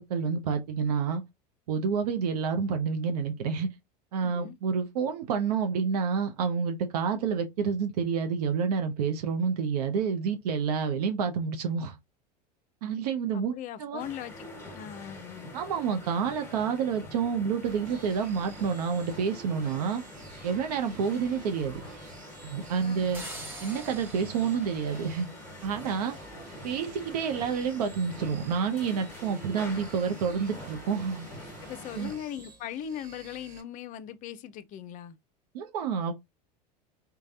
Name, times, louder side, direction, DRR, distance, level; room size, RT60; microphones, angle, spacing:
voice 1, 0.1-1.2 1.7-3.7 4.1-12.0 12.8-13.5 13.8-14.1 15.5-20.0 20.4-21.8 22.4-23.2 23.6-25.3 25.6-26.2 26.6-31.3 32.0-32.1 35.5-36.1, right 6 dB, 65° right, 0.6 m, -29 dB
voice 2, 4.2-4.6 13.3-15.5 22.8-23.2 31.6-35.2, left 10 dB, 40° left, 0.4 m, -40 dB
sound 1, 14.0-32.2, left 1 dB, 10° left, 1.3 m, -45 dB
sound 2, 17.6-33.6, right 4 dB, 40° right, 1.2 m, -51 dB
sound 3, 23.1-26.0, right 1 dB, 10° right, 0.9 m, -45 dB
3.1 x 2.2 x 2.5 m
figure-of-eight pair, 80°, 21 cm